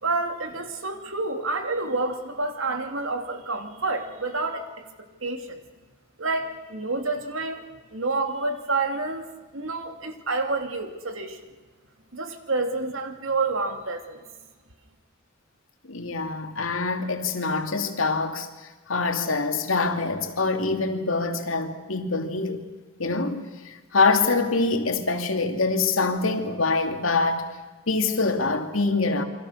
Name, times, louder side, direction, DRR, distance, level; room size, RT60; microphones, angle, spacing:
voice 1, 0.0-4.7 5.2-5.6 6.2-7.6 7.9-9.2 9.5-11.4 12.1-14.2, right 3 dB, 80° right, 2.7 m, -28 dB
voice 2, 15.9-18.5 18.9-22.6 23.0-27.5 27.9-29.2, left 3 dB, 85° left, 2.5 m, -25 dB
28.5 x 24.5 x 6.6 m
head